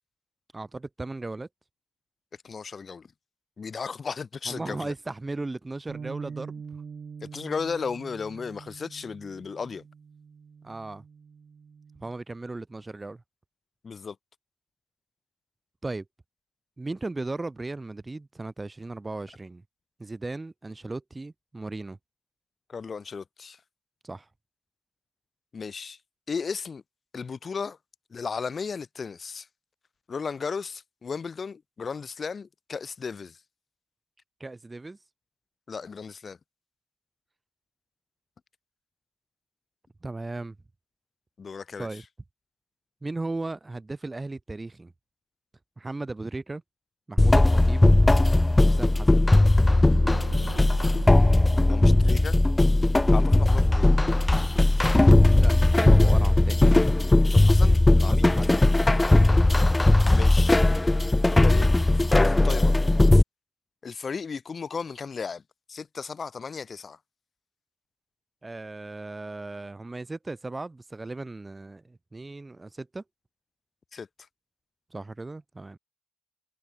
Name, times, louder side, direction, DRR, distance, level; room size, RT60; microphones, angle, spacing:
voice 1, 0.5-1.5 4.5-6.6 10.6-11.0 12.0-13.2 15.8-16.0 16.8-19.6 20.0-22.0 24.0-24.3 34.4-35.0 40.0-40.6 41.8-42.0 43.0-44.9 45.8-46.6 47.1-47.9 48.6-49.3 55.3-56.6 57.9-58.5 68.4-73.0 74.9-75.8, right 2 dB, 20° right, 1.1 m, -36 dB
voice 2, 2.4-3.1 3.6-4.9 7.2-9.8 13.8-14.2 22.7-23.6 25.5-26.0 26.3-26.8 27.1-27.8 28.1-29.5 30.1-33.4 35.7-36.4 41.4-42.0 51.6-52.4 53.1-53.9 57.3-58.3 60.1-60.6 61.4-62.8 63.8-65.4 65.7-67.0 73.9-74.1, left 5 dB, 40° left, 2.1 m, -35 dB
Bass guitar, 5.9-12.1, right 6 dB, 45° right, 1.0 m, -44 dB
sound 1, 47.2-63.2, left 2 dB, 15° left, 0.3 m, -18 dB
sound 2, 49.7-57.1, right 15 dB, 90° right, 4.0 m, -46 dB
cardioid pair, 90°, 0 cm